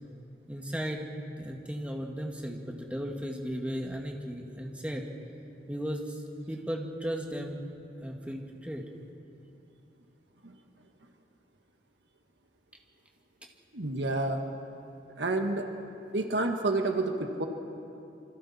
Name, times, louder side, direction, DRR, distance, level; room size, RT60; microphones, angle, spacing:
voice 1, 0.5-1.1 1.4-5.1 5.7-7.6 8.0-8.8, equal, 5° right, 1 dB, 1.9 m, -36 dB
voice 2, 13.7-14.4 15.2-15.6 16.1-17.5, right 2 dB, 80° right, 4 dB, 1.6 m, -29 dB
27.0 x 24.5 x 4.3 m, 2.7 s
head